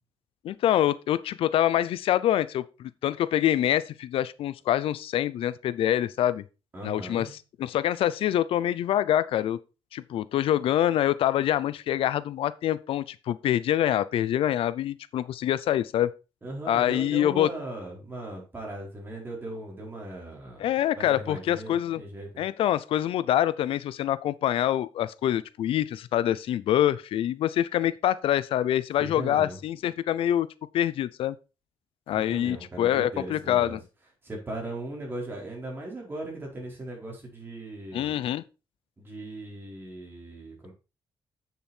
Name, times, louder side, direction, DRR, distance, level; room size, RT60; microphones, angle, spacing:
voice 1, 0.4-6.4 6.8-7.3 7.6-9.6 9.9-16.1 16.7-17.5 20.6-22.0 22.4-30.5 30.7-31.4 32.1-33.8 37.9-38.4, left 11 dB, 85° left, 0.5 m, -25 dB
voice 2, 6.7-7.3 16.4-20.7 20.9-22.3 29.0-29.6 32.3-33.8 34.2-38.1 39.0-40.7, right 2 dB, 25° right, 4.4 m, -38 dB
8.2 x 6.8 x 4.4 m
cardioid pair, 125°, 9 cm